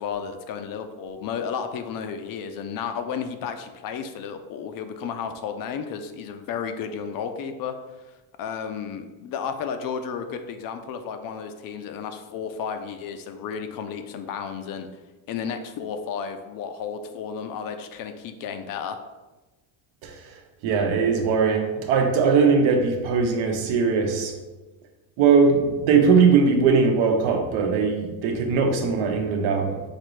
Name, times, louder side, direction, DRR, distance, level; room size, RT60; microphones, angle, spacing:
voice 1, 0.0-7.7 8.4-14.9 15.3-19.0, left 7 dB, 45° left, 7 dB, 0.5 m, -32 dB
voice 2, 20.0-24.3 25.2-29.8, right 5 dB, 75° right, 3 dB, 0.9 m, -20 dB
5.8 x 2.6 x 3.1 m, 1.2 s
cardioid pair, 140°, 48 cm